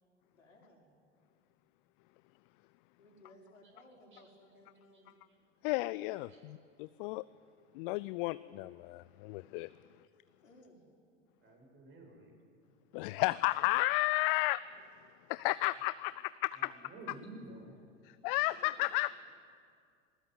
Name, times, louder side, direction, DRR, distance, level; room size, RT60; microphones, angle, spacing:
voice 1, 0.3-0.9 3.0-5.2 10.4-10.8 13.0-13.3 18.4-18.9, left 1 dB, 85° left, -2 dB, 5.5 m, -59 dB
voice 2, 5.6-7.2 7.7-9.7 12.9-14.6 15.3-16.7 18.2-19.1, left 20 dB, 45° left, 17 dB, 0.5 m, -33 dB
voice 3, 11.4-12.4 16.5-17.8, right 2 dB, 30° right, 1 dB, 7.9 m, -51 dB
19.5 x 19.5 x 9.7 m, 2.2 s
figure-of-eight pair, 85°, 38 cm